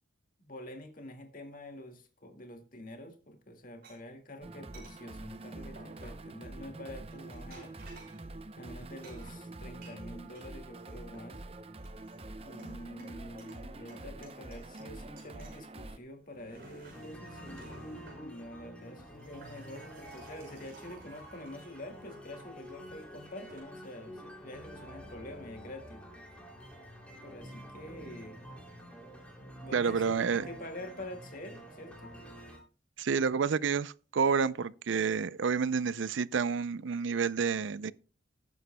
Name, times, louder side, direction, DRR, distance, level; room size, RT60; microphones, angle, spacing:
voice 1, 0.4-7.7 8.6-11.4 12.4-17.7 18.1-26.0 27.2-28.4 29.4-32.1, left 1 dB, 45° left, 2.0 m, -47 dB
sound 1, 3.8-4.0 4.7-5.0 5.8-6.3 7.1-8.2 9.0-10.5 10.8-11.4 11.8-12.7 13.0-13.6 13.9-14.9 15.2-15.6 16.2-18.2 19.0-22.5 23.2-23.6, right 2 dB, 50° right, 5.8 m, -54 dB
sound 2, 4.4-16.0, right 2 dB, 30° right, 0.6 m, -46 dB
sound 3, 16.9-32.6, equal, 5° left, 2.9 m, -48 dB
voice 2, 29.7-30.5 33.0-37.9, right 6 dB, 75° right, 0.4 m, -29 dB
18.5 x 9.4 x 2.2 m
head